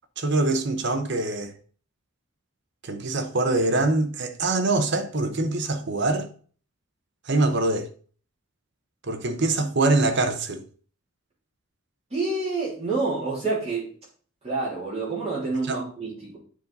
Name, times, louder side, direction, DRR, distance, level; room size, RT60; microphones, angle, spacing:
voice 1, 0.2-1.5 2.8-6.3 7.3-7.9 9.1-10.6 15.7-15.8, right 2 dB, 50° right, 0.9 m, -24 dB
voice 2, 12.1-13.9 14.4-16.4, right 3 dB, 30° right, 2.9 m, -28 dB
9.4 x 4.0 x 4.0 m
head